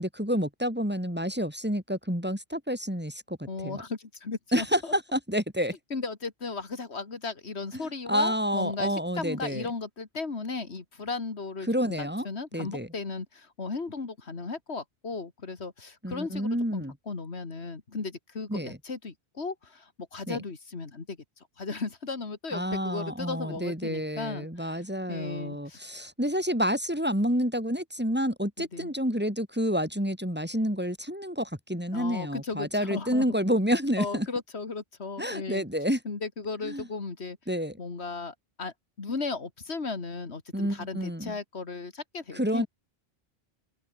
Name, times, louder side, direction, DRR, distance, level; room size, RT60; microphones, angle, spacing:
voice 1, 0.0-3.8 4.5-5.7 7.7-9.7 11.7-12.3 12.5-12.9 16.0-16.9 18.5-18.8 20.3-20.4 22.5-34.3 35.2-36.0 36.6-36.9 37.5-37.8 40.5-41.4 42.3-42.7, equal, 10° right, 3.4 m, -29 dB
voice 2, 3.5-4.9 5.9-24.8 25.1-25.8 28.6-28.9 31.9-33.4 34.0-35.6 36.0-37.4 37.8-42.7, left 4 dB, 90° left, 2.5 m, -36 dB
open air
omnidirectional pair, 1.1 m